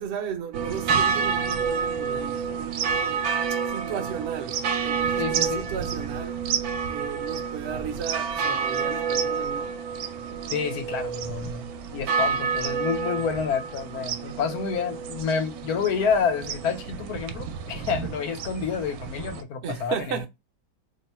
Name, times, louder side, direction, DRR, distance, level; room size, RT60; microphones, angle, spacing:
voice 1, 0.0-3.3 3.7-6.4 6.9-9.8 19.6-20.3, right 8 dB, 55° right, 0.8 m, -35 dB
sound 1, 0.5-19.4, right 6 dB, 80° right, 1.1 m, -29 dB
voice 2, 5.2-5.7 10.5-20.3, left 6 dB, 85° left, 1.2 m, -29 dB
3.0 x 2.1 x 4.0 m
omnidirectional pair, 1.6 m